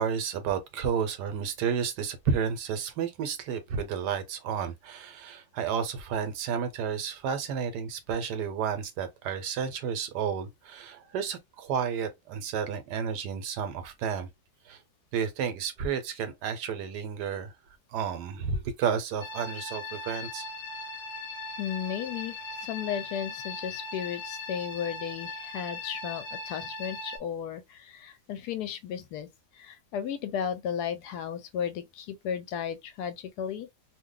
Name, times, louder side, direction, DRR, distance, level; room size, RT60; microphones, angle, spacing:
voice 1, 0.0-14.3 14.7-14.8 15.1-17.5 17.9-20.4, right 7 dB, 80° right, 1.3 m, -31 dB
sound 1, 19.2-27.2, left 3 dB, 50° left, 0.9 m, -39 dB
voice 2, 21.6-29.3 29.5-33.7, left 8 dB, 75° left, 1.1 m, -34 dB
2.8 x 2.1 x 3.7 m
omnidirectional pair, 1.8 m